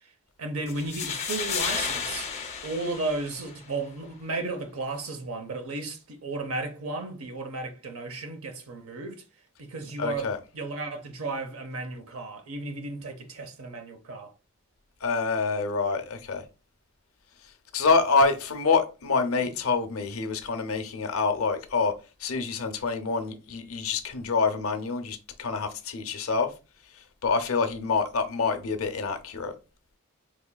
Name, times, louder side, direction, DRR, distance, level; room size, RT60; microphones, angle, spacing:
voice 1, 0.4-2.3 2.6-9.2 9.6-14.3 19.3-19.5, right 2 dB, 75° right, 0.7 m, -34 dB
sound 1, 0.7-3.7, left 6 dB, 30° left, 0.6 m, -32 dB
voice 2, 10.0-10.4 15.0-16.4 17.7-21.9 22.2-26.5 27.2-29.5, left 4 dB, 80° left, 0.7 m, -26 dB
4.3 x 3.0 x 2.2 m
head